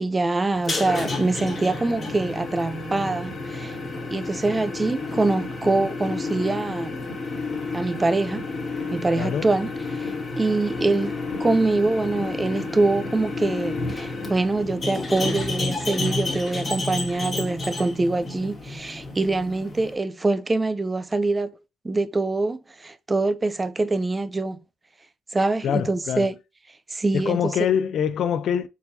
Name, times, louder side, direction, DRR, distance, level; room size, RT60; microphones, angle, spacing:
voice 1, 0.0-3.8 4.1-6.9 7.7-8.4 8.9-9.7 10.0-21.5 21.8-24.6 25.3-26.3 26.9-27.5, right 2 dB, 20° right, 0.4 m, -24 dB
sound 1, 0.5-19.9, left 3 dB, 30° left, 1.8 m, -31 dB
voice 2, 25.6-26.3 27.1-28.7, left 8 dB, 70° left, 0.3 m, -24 dB
4.4 x 4.1 x 2.6 m
cardioid pair, 90°, 0 cm